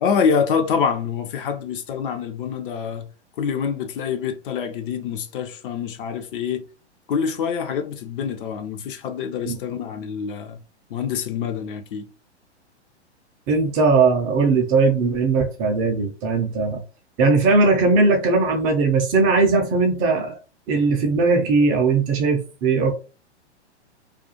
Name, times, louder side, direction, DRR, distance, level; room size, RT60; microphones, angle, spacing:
voice 1, 0.0-3.1 3.4-6.7 7.1-10.6 10.9-12.1, left 6 dB, 50° left, 0.5 m, -26 dB
voice 2, 13.5-16.8 17.2-20.4 20.7-22.9, right 4 dB, 25° right, 0.4 m, -19 dB
2.4 x 2.3 x 2.8 m
hypercardioid pair, 115°, 34 cm